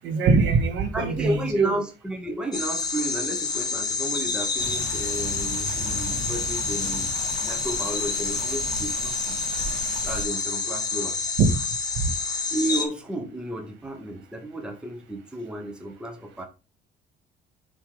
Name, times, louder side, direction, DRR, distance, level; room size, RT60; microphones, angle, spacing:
voice 1, 0.0-1.8 11.4-11.5, right 4 dB, 85° right, 5 dB, 1.7 m, -21 dB
voice 2, 0.9-7.1 7.4-9.3 10.0-11.2 12.5-16.5, right 1 dB, 5° right, 3 dB, 0.9 m, -32 dB
sound 1, 2.5-12.8, left 4 dB, 20° left, 0.9 m, -28 dB
sound 2, 4.6-10.2, right 2 dB, 35° right, 2.5 m, -37 dB
7.3 x 3.0 x 4.9 m, 0.31 s
cardioid pair, 170°, 19 cm